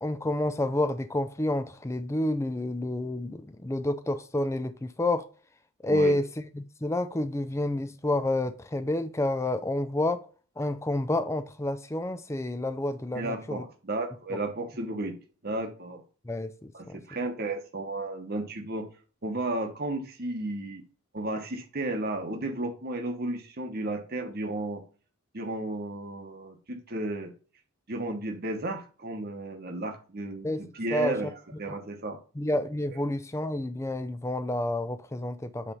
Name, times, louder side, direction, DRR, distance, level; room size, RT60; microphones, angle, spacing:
voice 1, 0.0-5.2 5.8-10.3 10.6-13.6 16.3-17.0 30.4-30.6 30.9-31.2 31.7-31.8 32.4-35.7, left 1 dB, 10° left, 0.4 m, -29 dB
voice 2, 13.1-15.2 15.4-16.0 16.7-18.9 19.2-20.8 21.1-24.8 25.3-27.3 27.9-32.2, right 2 dB, 45° right, 1.0 m, -33 dB
8.4 x 3.3 x 5.4 m
head